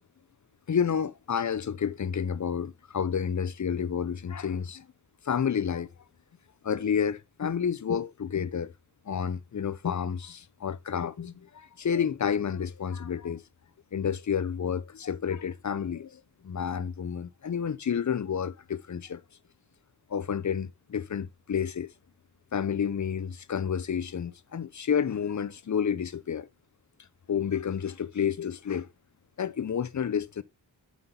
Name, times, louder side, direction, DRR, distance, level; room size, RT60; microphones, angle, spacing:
voice 1, 0.7-4.9 5.2-5.9 6.6-8.7 9.1-13.4 13.9-19.2 20.1-21.9 22.5-26.5 27.3-28.9 29.4-30.4, left 7 dB, 40° left, 0.6 m, -30 dB
8.5 x 5.7 x 3.8 m
wide cardioid pair, 85°, 46 cm